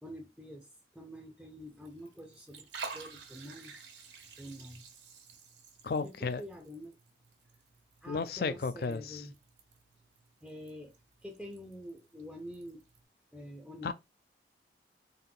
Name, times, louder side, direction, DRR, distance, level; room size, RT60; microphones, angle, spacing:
voice 1, 0.0-3.7 4.4-4.9 6.0-7.0 8.0-9.4 10.4-12.8 13.3-13.9, equal, ahead, 0.5 m, -47 dB
Liquid, 1.6-13.0, right 4 dB, 85° right, 1.1 m, -51 dB
voice 2, 5.8-6.4 8.1-9.2 13.8-13.9, left 4 dB, 60° left, 0.4 m, -33 dB
3.8 x 2.5 x 3.7 m
head